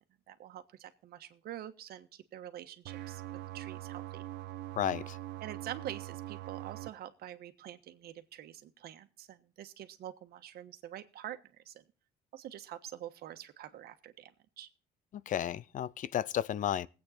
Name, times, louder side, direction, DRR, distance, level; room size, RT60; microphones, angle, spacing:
voice 1, 0.3-4.2 5.4-11.8 12.3-14.7, right 12 dB, 65° right, 1.4 m, -46 dB
sound 1, 2.9-6.9, right 15 dB, 85° right, 0.8 m, -43 dB
voice 2, 4.8-5.2 15.3-16.9, left 10 dB, 50° left, 0.5 m, -32 dB
20.5 x 8.6 x 4.2 m
cardioid pair, 110°, 17 cm